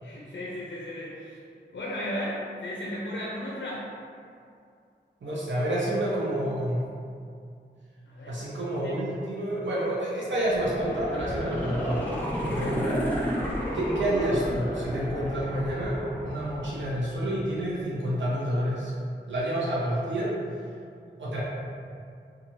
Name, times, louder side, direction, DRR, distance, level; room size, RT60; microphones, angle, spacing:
voice 1, 0.0-1.4 1.7-3.9 8.1-9.0, left 1 dB, 80° left, -5 dB, 0.4 m, -35 dB
voice 2, 5.2-6.8 8.3-12.1 12.4-13.1 13.7-18.9 19.3-20.4 21.2-21.4, right 1 dB, 90° right, -7 dB, 0.5 m, -29 dB
sound 1, 10.5-17.4 17.8-17.9, equal, 10° left, 0.7 m, -32 dB
2.6 x 2.3 x 2.9 m, 2.3 s
wide cardioid pair, 60°, 19 cm